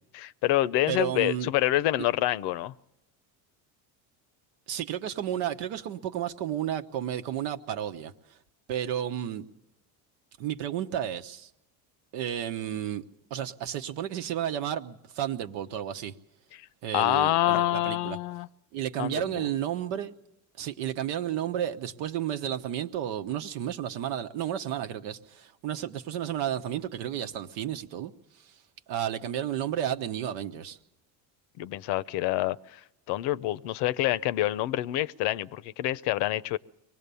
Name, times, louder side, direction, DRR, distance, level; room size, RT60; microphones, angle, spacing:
voice 1, 0.1-2.7 16.9-18.5 19.0-19.2 31.6-32.8 33.1-36.6, left 15 dB, 70° left, 0.7 m, -27 dB
voice 2, 0.9-1.5 2.0-2.1 4.7-8.4 8.7-9.5 10.4-11.5 12.1-13.0 13.3-16.2 16.8-18.2 18.7-20.1 20.6-28.6 28.9-30.8, right 10 dB, 75° right, 1.2 m, -32 dB
24.0 x 18.5 x 6.9 m
supercardioid pair, 110°, 43 cm